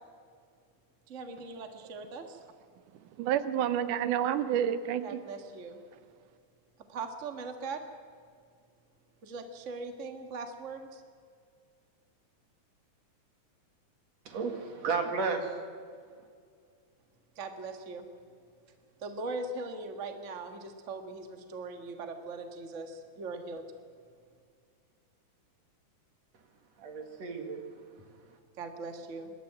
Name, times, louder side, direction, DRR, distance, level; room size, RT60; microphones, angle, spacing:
voice 1, 1.1-2.4 5.0-5.8 6.9-7.8 9.2-11.0 17.3-18.0 19.0-23.7 28.6-29.3, right 3 dB, 35° right, 5 dB, 1.4 m, -40 dB
voice 2, 3.2-5.2, right 10 dB, 90° right, 12 dB, 2.4 m, -29 dB
voice 3, 14.2-15.5 26.8-27.6, right 4 dB, 60° right, 4 dB, 3.3 m, -33 dB
27.0 x 12.5 x 8.9 m, 2.1 s
omnidirectional pair, 3.5 m